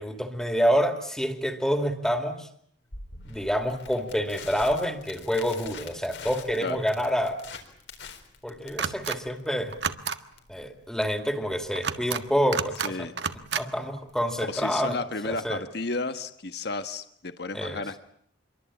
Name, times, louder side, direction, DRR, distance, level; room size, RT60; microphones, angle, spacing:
voice 1, 0.0-2.5 3.2-7.4 8.4-9.7 10.5-12.9 13.6-15.0 15.2-15.6 17.5-17.8, equal, 5° left, 6 dB, 2.5 m, -27 dB
Crackle, 2.9-14.9, left 4 dB, 75° left, 4.3 m, -46 dB
sound 1, 8.8-9.2 9.7-10.2 11.7-12.2 12.5-12.9 13.2-13.6, right 6 dB, 70° right, 1.6 m, -30 dB
voice 2, 12.8-13.1 14.5-18.0, left 3 dB, 60° left, 9 dB, 1.5 m, -33 dB
27.5 x 23.5 x 8.6 m, 0.65 s
head